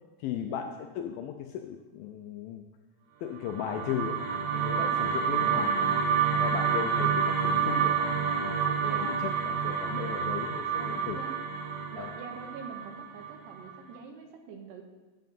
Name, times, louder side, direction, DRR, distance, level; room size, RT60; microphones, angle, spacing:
voice 1, 0.2-2.7 3.2-4.2 4.5-5.7 6.4-11.2 12.0-12.1, left 9 dB, 90° left, 5 dB, 2.0 m, -37 dB
sound 1, 3.4-13.7, right 7 dB, 65° right, 2.1 m, -28 dB
voice 2, 4.8-5.8 8.8-9.5 10.8-11.3 11.9-14.8, right 5 dB, 80° right, 3 dB, 3.3 m, -44 dB
10.5 x 7.7 x 5.3 m, 1.2 s
omnidirectional pair, 4.8 m